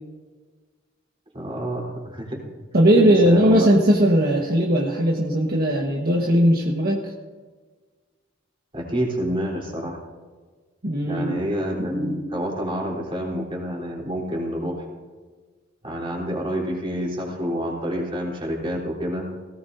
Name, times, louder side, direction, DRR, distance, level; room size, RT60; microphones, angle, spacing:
voice 1, 1.3-2.4 3.0-3.7 8.7-10.0 11.1-14.8 15.8-19.3, equal, 30° right, -2 dB, 3.9 m, -28 dB
voice 2, 2.7-7.1 10.8-11.3, equal, 50° right, -1 dB, 1.5 m, -18 dB
18.5 x 18.0 x 2.7 m, 1.4 s
head